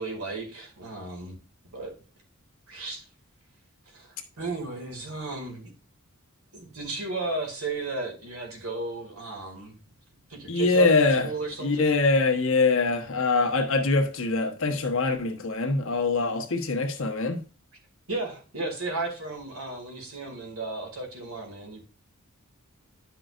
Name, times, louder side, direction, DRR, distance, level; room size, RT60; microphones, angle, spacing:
voice 1, 0.0-1.4 1.7-1.9 2.7-3.0 3.9-5.7 6.5-9.8 10.3-12.0 18.1-21.8, right 3 dB, 80° right, 2.4 m, -34 dB
voice 2, 10.5-11.3 11.6-17.4, left 3 dB, 65° left, 1.2 m, -23 dB
10.5 x 5.8 x 2.5 m
head